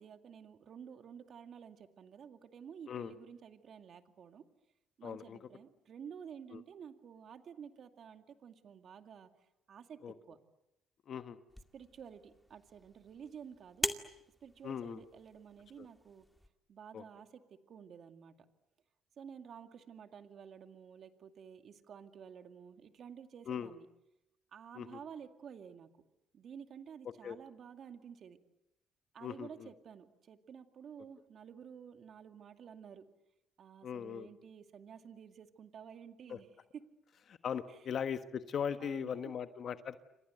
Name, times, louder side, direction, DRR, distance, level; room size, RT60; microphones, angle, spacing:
voice 1, 0.0-4.4 5.0-10.4 11.7-13.9 14.4-16.3 16.7-18.3 19.2-23.9 24.5-25.9 26.3-28.4 29.1-33.1 33.6-36.5 36.7-36.8 37.7-37.9 38.8-39.3, right 7 dB, 55° right, 7 dB, 2.3 m, -52 dB
voice 2, 5.0-5.4 6.5-6.6 10.0-10.1 11.1-11.4 14.6-15.0 16.9-17.0 23.5-23.7 24.8-25.0 27.2-27.4 29.2-29.7 33.8-34.3 36.3-36.4 37.3-40.0, left 8 dB, 55° left, 10 dB, 1.3 m, -39 dB
sound 1, 11.5-16.5, left 1 dB, 5° left, 2.2 m, -44 dB
29.0 x 25.5 x 8.0 m, 0.89 s
supercardioid pair, 70°, 0 cm